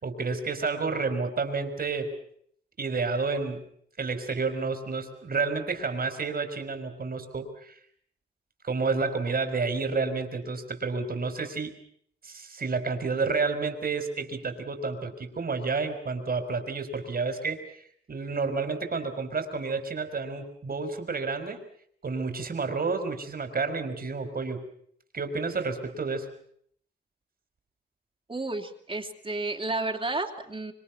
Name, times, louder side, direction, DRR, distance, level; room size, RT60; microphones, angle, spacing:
voice 1, 0.0-2.1 2.8-3.6 4.0-7.8 8.6-11.7 12.2-21.6 22.0-24.6 25.1-26.3, right 4 dB, 60° right, 9 dB, 4.5 m, -30 dB
voice 2, 28.3-30.7, right 2 dB, 30° right, 2 dB, 2.8 m, -32 dB
26.0 x 25.5 x 5.9 m, 0.64 s
wide cardioid pair, 100°, 18 cm